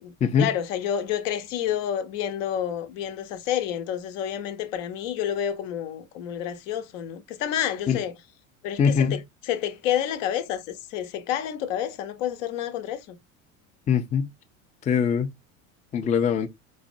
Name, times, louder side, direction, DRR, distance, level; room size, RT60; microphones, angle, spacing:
voice 1, 0.0-8.1 8.6-13.2, left 10 dB, 65° left, 0.8 m, -29 dB
voice 2, 8.8-9.2 13.9-14.3 14.8-15.3 15.9-16.5, left 7 dB, 20° left, 0.5 m, -22 dB
4.0 x 2.2 x 2.5 m
hypercardioid pair, 80°, 41 cm